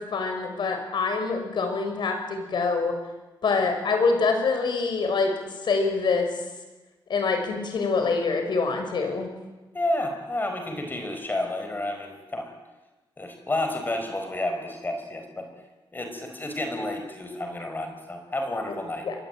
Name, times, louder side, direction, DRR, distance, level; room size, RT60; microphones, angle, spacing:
voice 1, 0.0-2.9 3.4-5.3 5.6-6.3 7.1-9.3 19.0-19.2, left 4 dB, 65° left, 5 dB, 6.6 m, -25 dB
voice 2, 9.7-12.6 13.2-15.5 15.9-19.1, left 1 dB, 25° left, 5 dB, 5.0 m, -30 dB
28.5 x 22.5 x 9.1 m, 1.1 s
wide cardioid pair, 145°, 8 cm